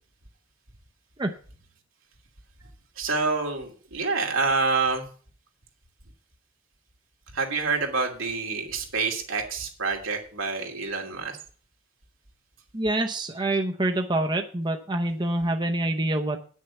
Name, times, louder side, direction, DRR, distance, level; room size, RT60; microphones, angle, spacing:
voice 1, 3.0-5.1 7.3-11.4, right 4 dB, 85° right, 1 dB, 2.7 m, -27 dB
voice 2, 12.7-16.4, right 1 dB, 25° right, 4 dB, 0.8 m, -26 dB
9.4 x 6.4 x 7.0 m, 0.42 s
head